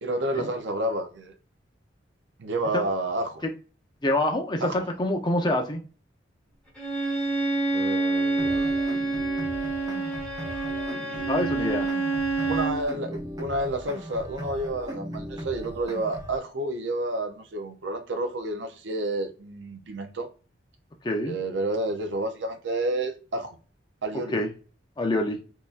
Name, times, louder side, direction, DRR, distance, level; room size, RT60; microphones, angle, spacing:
voice 1, 0.0-1.4 2.4-3.4 4.6-4.9 7.7-8.7 12.5-20.3 21.3-23.6 24.0-24.4, right 1 dB, 65° right, 0.6 m, -30 dB
voice 2, 4.0-5.8 11.3-11.9 21.0-21.4 24.3-24.5 25.0-25.4, left 1 dB, 25° left, 0.6 m, -26 dB
Bowed string instrument, 6.8-12.8, right 3 dB, 5° left, 1.2 m, -27 dB
sound 1, 8.4-16.4, equal, 20° right, 0.6 m, -38 dB
3.7 x 2.6 x 2.4 m
head